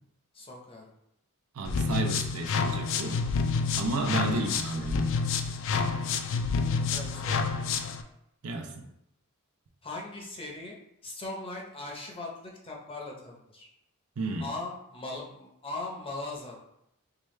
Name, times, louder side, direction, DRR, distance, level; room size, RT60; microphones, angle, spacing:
voice 1, 0.3-0.9 4.2-4.9 6.7-7.7 9.8-10.8 11.0-13.7 14.4-16.6, left 2 dB, 25° left, -1 dB, 0.7 m, -40 dB
voice 2, 1.5-3.2 3.7-5.1 8.4-8.9 14.2-14.5, right 3 dB, 75° right, 4 dB, 0.6 m, -32 dB
sound 1, 1.6-8.0, left 5 dB, 60° left, 0.3 m, -29 dB
4.7 x 2.2 x 3.2 m, 0.79 s
head